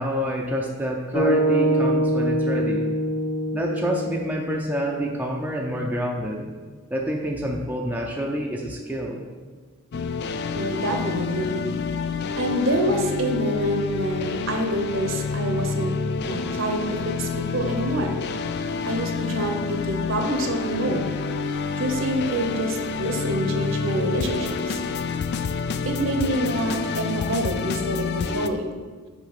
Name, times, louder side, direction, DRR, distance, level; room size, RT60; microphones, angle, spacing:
voice 1, 0.0-2.9 3.5-6.5 6.9-9.2, equal, 10° right, -1 dB, 0.5 m, -27 dB
sound 1, 1.1-5.4, equal, 65° left, 2.3 m, -24 dB
sound 2, 9.9-28.5, left 5 dB, 50° left, 0.3 m, -28 dB
voice 2, 10.5-11.7 12.4-15.9 16.3-18.2 18.9-21.1 21.8-24.8 25.8-28.7, right 1 dB, 60° right, 3 dB, 1.0 m, -26 dB
6.0 x 4.8 x 5.8 m, 1.5 s
head